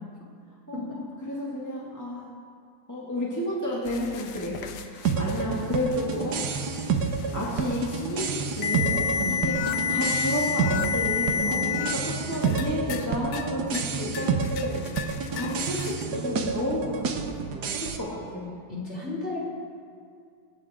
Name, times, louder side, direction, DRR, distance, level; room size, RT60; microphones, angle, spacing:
voice 1, 0.7-2.3 2.9-6.4 7.1-14.8 15.3-17.1 17.4-18.5, left 1 dB, 10° left, -6 dB, 1.9 m, -31 dB
sound 1, 3.9-11.9 12.3-13.1 13.3-13.9 14.1-16.0, left 7 dB, 70° left, 1.3 m, -31 dB
sound 2, 5.0-18.0, right 5 dB, 65° right, 1.5 m, -29 dB
voice 2, 9.2-9.5 11.3-11.8 18.7-19.4, left 2 dB, 35° left, -7 dB, 4.1 m, -33 dB
25.5 x 9.3 x 3.7 m, 2.3 s
omnidirectional pair, 2.0 m